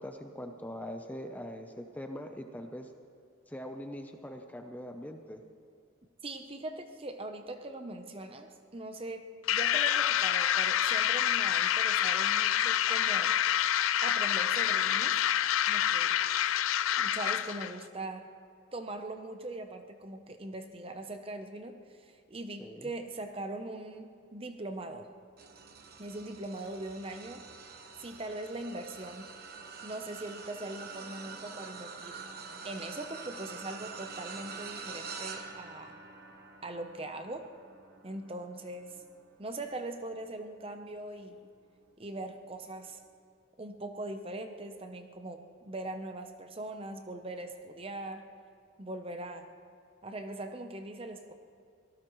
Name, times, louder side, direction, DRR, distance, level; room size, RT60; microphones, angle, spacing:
voice 1, 0.0-2.9 3.5-5.4 22.6-22.9, equal, 10° left, 5 dB, 0.6 m, -42 dB
voice 2, 6.2-13.3 14.0-15.2 15.7-16.2 17.0-18.3 18.7-25.1 26.0-27.4 28.0-29.3 29.8-32.2 32.6-36.0 36.6-37.5 38.0-38.9 39.4-41.5 42.0-43.0 43.6-48.3 48.8-49.5 50.0-51.3, right 2 dB, 30° right, 6 dB, 0.8 m, -41 dB
sound 1, 9.5-17.8, left 10 dB, 80° left, 0.4 m, -27 dB
sound 2, 25.4-40.9 41.4-41.7 42.9-43.0, right 5 dB, 50° right, 1.2 m, -46 dB
25.0 x 18.0 x 3.1 m, 2.4 s
head